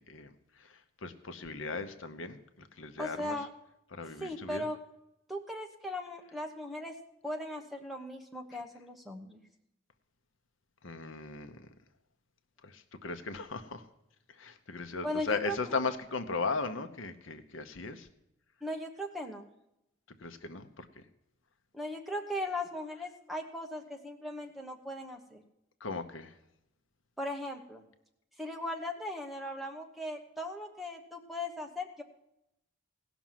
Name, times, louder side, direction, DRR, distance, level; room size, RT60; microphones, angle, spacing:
voice 1, 0.0-3.4 3.9-4.6 10.8-11.7 12.6-13.8 14.3-18.1 20.2-21.0 25.8-26.3, left 4 dB, 70° left, 9 dB, 0.9 m, -37 dB
voice 2, 3.0-3.5 4.2-4.8 5.3-7.0 7.2-9.4 15.0-15.6 18.6-19.5 21.7-25.4 27.2-27.9 28.4-32.0, left 1 dB, ahead, 2 dB, 1.1 m, -38 dB
17.0 x 6.1 x 7.4 m, 0.85 s
head